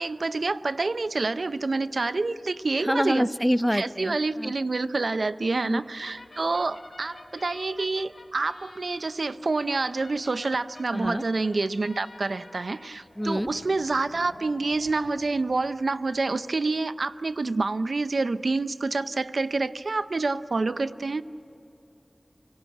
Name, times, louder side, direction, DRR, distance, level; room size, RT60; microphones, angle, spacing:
voice 1, 0.0-3.3 3.7-21.2, right 3 dB, 90° right, 13 dB, 0.5 m, -27 dB
voice 2, 2.8-4.5 5.6-5.8 10.9-11.2 13.2-13.5, equal, ahead, 14 dB, 0.5 m, -26 dB
sound 1, 6.0-16.3, left 2 dB, 90° left, 2.2 m, -50 dB
26.0 x 17.5 x 9.0 m, 2.9 s
wide cardioid pair, 60°, 0 cm